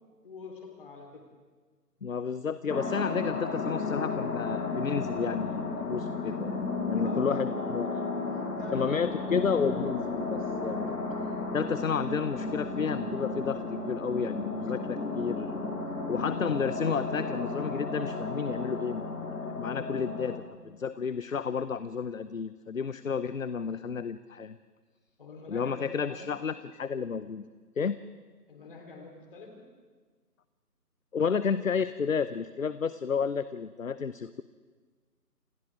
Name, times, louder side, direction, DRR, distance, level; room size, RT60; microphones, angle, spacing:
voice 1, 0.2-1.2 3.2-3.9 7.0-7.4 8.2-9.1 11.0-11.2 25.2-26.4 28.5-29.6, left 3 dB, 35° left, 1 dB, 4.1 m, -45 dB
voice 2, 2.0-8.1 8.7-10.9 11.5-15.7 16.1-19.1 19.6-24.6 25.5-27.5 27.8-28.1 31.1-34.4, left 6 dB, 55° left, 13 dB, 0.8 m, -31 dB
sound 1, 2.7-20.4, left 3 dB, 80° left, 4.3 m, -33 dB
29.0 x 28.5 x 3.7 m, 1.4 s
figure-of-eight pair, 165°, 48 cm